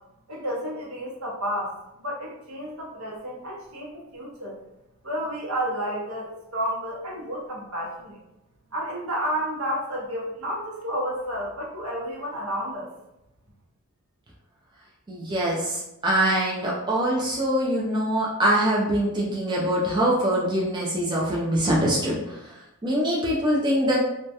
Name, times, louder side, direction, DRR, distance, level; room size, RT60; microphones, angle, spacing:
voice 1, 0.3-4.6 5.0-8.2 8.7-12.9, equal, 75° right, -3 dB, 0.7 m, -31 dB
voice 2, 15.1-22.2 22.8-24.0, right 1 dB, 20° right, -4 dB, 0.3 m, -23 dB
2.2 x 2.1 x 2.7 m, 0.87 s
head